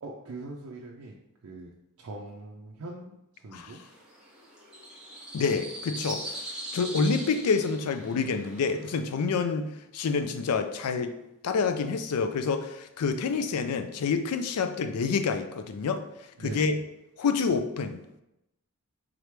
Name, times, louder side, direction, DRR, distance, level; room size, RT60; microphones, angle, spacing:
voice 1, 0.0-1.1 1.4-1.7 2.0-3.8 16.4-16.8, right 2 dB, 70° right, -2 dB, 0.4 m, -41 dB
sound 1, 3.8-9.0, right 1 dB, 5° right, 0.9 m, -41 dB
voice 2, 5.3-11.1 11.4-16.0 16.4-16.7 17.2-18.2, left 5 dB, 90° left, 8 dB, 0.4 m, -28 dB
3.7 x 3.1 x 3.3 m, 0.87 s
head